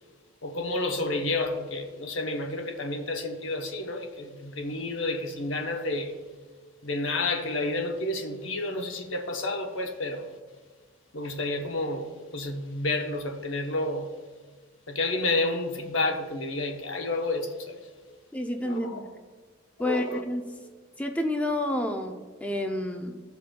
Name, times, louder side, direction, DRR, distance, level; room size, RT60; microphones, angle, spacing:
voice 1, 0.4-6.2 6.8-10.3 11.1-14.1 14.9-17.9 18.6-19.0 19.8-20.2, left 2 dB, 85° left, 0.9 m, -30 dB
voice 2, 18.3-19.1 19.8-20.4 21.0-23.2, left 1 dB, 10° left, 0.5 m, -29 dB
15.5 x 5.6 x 2.2 m
head